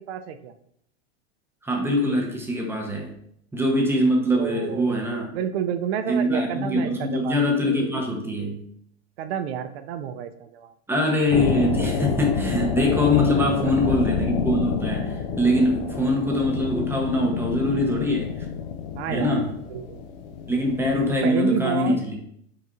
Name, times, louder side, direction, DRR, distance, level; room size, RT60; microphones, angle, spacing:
voice 1, 0.1-0.5 4.3-7.4 7.6-8.0 9.2-10.7 13.4-13.5 13.9-14.0 19.0-20.0 21.1-22.0, right 9 dB, 65° right, 9 dB, 0.5 m, -30 dB
voice 2, 1.6-3.1 3.5-5.3 6.1-8.6 10.9-18.5 19.1-19.5 20.5-22.2, left 1 dB, 5° right, 0 dB, 0.6 m, -23 dB
sound 1, 11.3-21.2, left 6 dB, 55° left, 0.6 m, -28 dB
3.7 x 2.5 x 4.2 m, 0.70 s
supercardioid pair, 125°, 34 cm